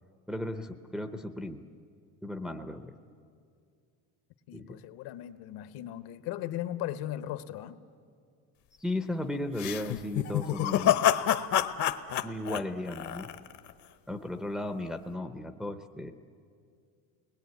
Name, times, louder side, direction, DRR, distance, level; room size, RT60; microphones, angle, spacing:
voice 1, 0.3-1.6 2.2-2.9 4.5-4.8 8.8-10.9 12.2-13.3 14.1-16.1, left 1 dB, ahead, 0.6 m, -35 dB
voice 2, 4.5-7.8, left 12 dB, 65° left, 1.1 m, -37 dB
sound 1, 9.6-13.7, left 11 dB, 45° left, 0.8 m, -27 dB
29.5 x 20.5 x 9.3 m
cardioid pair, 165°, 39 cm